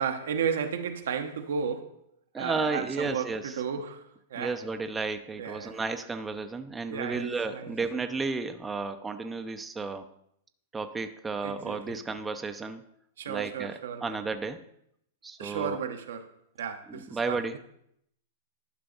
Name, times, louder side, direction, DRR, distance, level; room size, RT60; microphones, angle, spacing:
voice 1, 0.0-2.0 2.4-4.6 5.4-5.8 6.9-7.7 11.4-12.0 13.2-14.2 15.4-16.3 16.6-17.6, right 7 dB, 75° right, 0.9 m, -34 dB
voice 2, 2.3-3.5 4.4-10.1 10.7-12.8 13.3-14.6 15.2-15.8 16.9-17.6, right 4 dB, 15° right, 0.6 m, -33 dB
11.5 x 5.7 x 3.9 m
hypercardioid pair, 120°, 0 cm